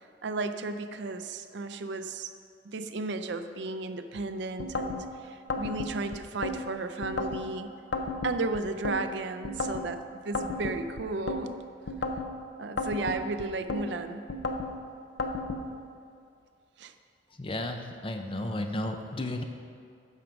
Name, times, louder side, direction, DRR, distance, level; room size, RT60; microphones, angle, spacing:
voice 1, 0.0-2.3 2.6-7.7 8.2-11.6 12.6-14.2 16.8-16.9, right 3 dB, 65° right, 9 dB, 0.4 m, -34 dB
sound 1, 4.6-5.0 5.5-6.6 7.0-7.4 7.9-9.0 9.4-9.9 10.3-11.4 11.9-12.3 12.8-13.8 14.3-14.7 15.2-15.6, left 2 dB, 70° left, 0.6 m, -32 dB
voice 2, 17.4-19.4, left 1 dB, 25° left, 5 dB, 0.5 m, -33 dB
9.2 x 6.0 x 5.1 m, 2.4 s
head